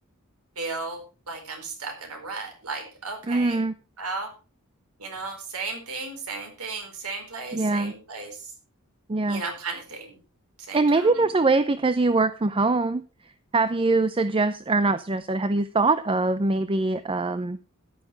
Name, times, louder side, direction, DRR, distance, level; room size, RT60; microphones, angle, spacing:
voice 1, 0.6-3.6 4.0-4.3 5.0-8.3 9.3-10.2 10.7-11.1, right 3 dB, 80° right, 5 dB, 4.5 m, -35 dB
voice 2, 3.2-3.7 7.5-7.9 9.1-9.4 10.7-13.0 13.5-17.6, right 3 dB, 25° right, 13 dB, 0.6 m, -23 dB
14.5 x 11.0 x 3.4 m, 0.32 s
head